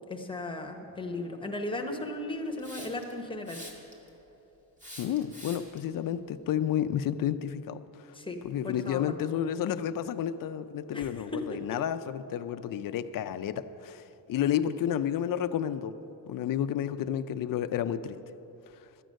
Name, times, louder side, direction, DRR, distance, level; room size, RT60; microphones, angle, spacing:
voice 1, 0.1-3.6 8.1-8.4 8.6-9.2 10.9-11.8, left 2 dB, 10° left, 3 dB, 0.8 m, -36 dB
Hiss, 2.6-3.1 3.5-4.1 4.8-5.8, equal, 15° right, 1.6 m, -45 dB
voice 2, 5.0-8.1 8.4-16.0 16.3-18.2, left 10 dB, 50° left, 11 dB, 0.4 m, -31 dB
13.0 x 9.0 x 6.3 m, 2.9 s
cardioid pair, 175°, 44 cm